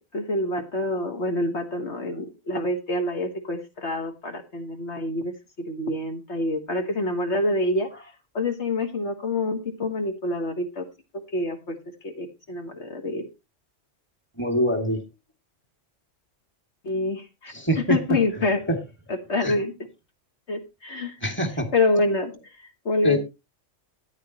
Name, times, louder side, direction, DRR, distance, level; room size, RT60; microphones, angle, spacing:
voice 1, 0.1-5.3 5.7-7.9 8.3-10.9 11.3-11.8 12.0-13.3 16.8-18.6 19.1-19.7 20.5-21.2 21.7-22.3 22.9-23.2, left 2 dB, 65° left, 5 dB, 1.8 m, -26 dB
voice 2, 14.4-15.0 17.5-18.0 18.7-18.8 19.4-19.5 21.2-21.7 23.0-23.2, equal, 10° left, 3 dB, 2.3 m, -23 dB
14.0 x 9.8 x 2.9 m, 0.25 s
omnidirectional pair, 1.3 m